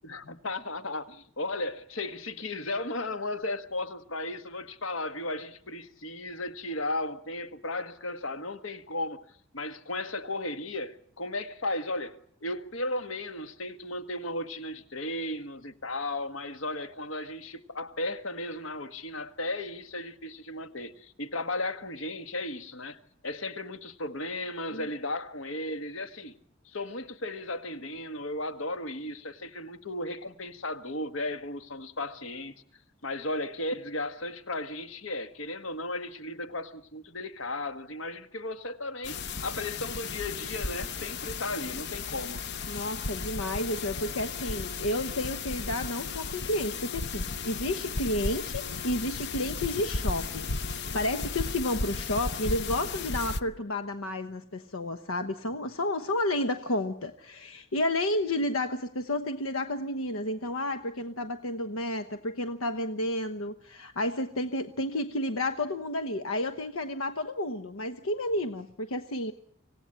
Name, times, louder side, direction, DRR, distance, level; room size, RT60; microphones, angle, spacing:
voice 1, 0.0-26.3 26.6-32.5 33.0-42.4, left 2 dB, 70° left, 1.7 m, -35 dB
sound 1, 39.0-53.4, left 4 dB, 55° left, 1.0 m, -35 dB
voice 2, 42.7-69.3, left 1 dB, 90° left, 1.1 m, -31 dB
26.0 x 17.5 x 8.8 m
head